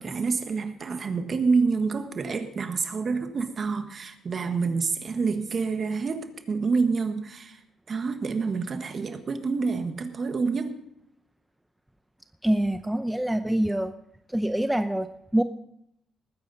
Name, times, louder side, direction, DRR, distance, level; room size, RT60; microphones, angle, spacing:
voice 1, 0.0-7.6 7.9-10.8, right 4 dB, 45° right, 8 dB, 1.5 m, -27 dB
voice 2, 12.4-13.9 14.3-15.4, right 1 dB, 5° right, 9 dB, 0.6 m, -25 dB
20.0 x 9.5 x 4.1 m, 0.75 s
cardioid pair, 90°, 0 cm